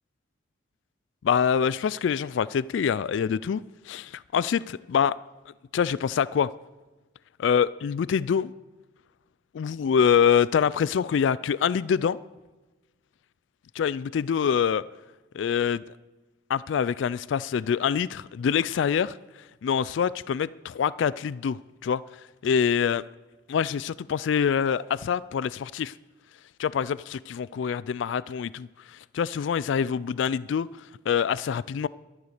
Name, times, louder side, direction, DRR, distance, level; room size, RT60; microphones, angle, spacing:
voice 1, 1.2-5.1 5.7-6.5 7.4-8.5 9.5-12.2 13.8-14.8 15.3-15.8 16.5-19.1 19.6-22.0 22.4-23.0 23.5-25.9 26.6-30.7 31.1-31.9, left 7 dB, 80° left, 0.3 m, -25 dB
12.5 x 11.0 x 6.6 m
head